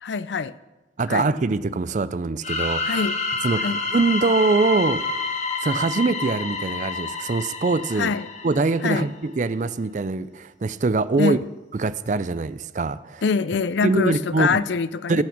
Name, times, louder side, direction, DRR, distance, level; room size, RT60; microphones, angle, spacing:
voice 1, 0.0-0.5 1.1-1.3 2.8-3.2 3.6-3.8 8.0-8.3 8.8-9.1 11.2-11.5 13.2-15.2, left 5 dB, 75° left, 16 dB, 0.5 m, -24 dB
voice 2, 1.0-3.0 3.4-5.0 5.6-8.1 8.4-11.4 11.7-13.2 13.8-14.6 15.1-15.2, right 3 dB, 40° right, 15 dB, 0.4 m, -23 dB
sound 1, 2.4-9.1, left 3 dB, 40° left, 1.2 m, -28 dB
17.5 x 6.0 x 7.2 m, 1.1 s
head